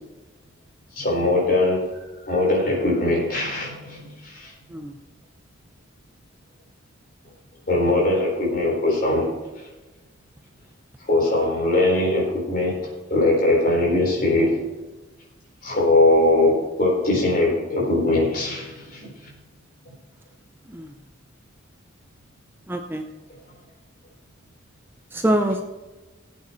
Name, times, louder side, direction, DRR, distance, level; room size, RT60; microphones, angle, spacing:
voice 1, 0.9-1.8 2.3-4.5 7.7-9.3 11.1-14.6 15.6-19.3, left 2 dB, 45° left, -2 dB, 4.4 m, -21 dB
voice 2, 22.7-23.0 25.1-25.6, right 1 dB, 10° right, 5 dB, 0.6 m, -24 dB
18.0 x 8.4 x 3.2 m, 1.2 s
head